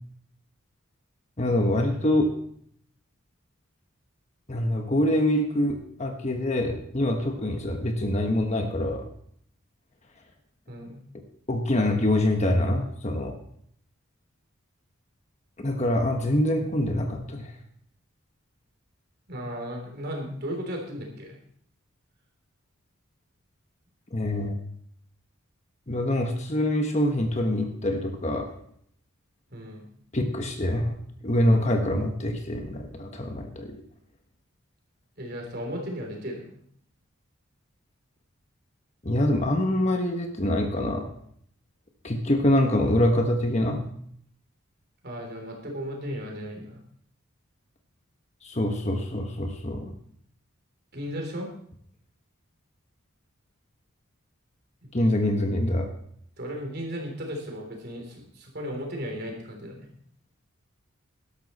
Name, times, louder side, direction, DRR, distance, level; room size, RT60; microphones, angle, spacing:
voice 1, 1.4-2.3 4.5-9.1 11.5-13.3 15.6-17.5 24.1-24.5 25.9-28.5 30.1-30.9 31.2-33.8 39.0-41.1 42.0-43.8 48.4-49.9 54.9-55.9, left 1 dB, 30° left, 4 dB, 1.3 m, -25 dB
voice 2, 10.7-11.0 19.3-21.4 29.5-29.9 35.2-36.6 45.0-46.8 50.9-51.5 54.8-55.1 56.4-59.9, equal, 50° right, 1 dB, 3.3 m, -35 dB
13.0 x 12.0 x 4.3 m, 0.66 s
head